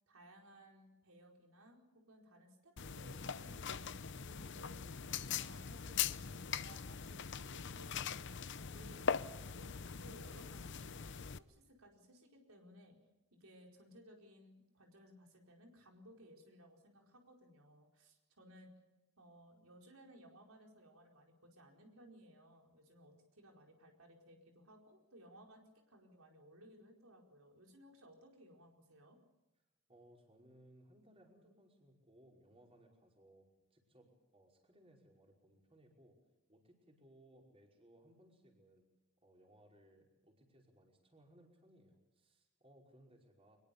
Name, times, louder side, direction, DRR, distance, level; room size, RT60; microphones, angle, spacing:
voice 1, 0.1-9.7 10.0-13.0 13.3-18.7 19.2-29.2, equal, 90° right, 2 dB, 4.7 m, -61 dB
sound 1, 2.8-11.4, left 7 dB, 55° left, 0.8 m, -41 dB
voice 2, 29.9-36.2 36.5-38.9 39.2-43.6, right 1 dB, 25° right, 0 dB, 5.3 m, -65 dB
24.0 x 21.5 x 6.9 m, 1.0 s
head